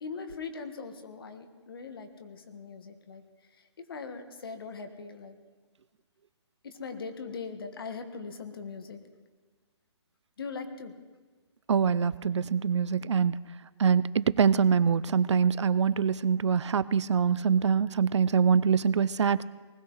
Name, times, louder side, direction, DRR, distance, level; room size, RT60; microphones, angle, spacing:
voice 1, 0.0-3.2 3.9-5.4 6.6-9.0 10.4-10.9, left 5 dB, 55° left, 8 dB, 1.5 m, -40 dB
voice 2, 11.7-13.3 13.8-19.4, right 6 dB, 85° right, 18 dB, 0.6 m, -24 dB
19.5 x 16.5 x 4.0 m, 1.3 s
hypercardioid pair, 175°, 15 cm